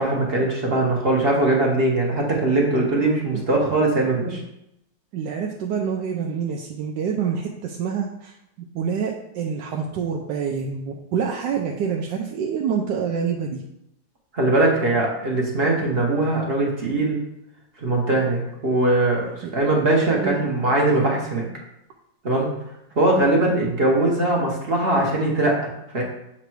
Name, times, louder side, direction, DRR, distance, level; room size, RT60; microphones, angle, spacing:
voice 1, 0.0-4.4 14.3-17.2 17.8-21.5 22.2-22.5 23.0-26.0, right 2 dB, 40° right, -1 dB, 1.1 m, -21 dB
voice 2, 5.1-8.3 8.7-13.6 19.4-19.5 20.2-20.4, right 6 dB, 75° right, 0 dB, 1.1 m, -26 dB
7.3 x 3.0 x 4.6 m, 0.81 s
omnidirectional pair, 2.0 m